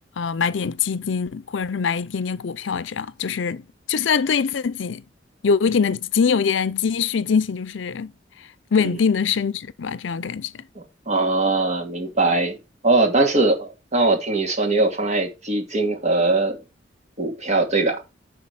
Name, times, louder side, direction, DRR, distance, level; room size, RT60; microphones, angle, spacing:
voice 1, 0.2-5.0 5.4-8.1 8.7-10.6, left 6 dB, 75° left, 0.5 m, -23 dB
voice 2, 10.8-12.6 12.8-16.6 17.2-18.0, right 2 dB, 40° right, 2.5 m, -21 dB
10.0 x 4.0 x 6.3 m
head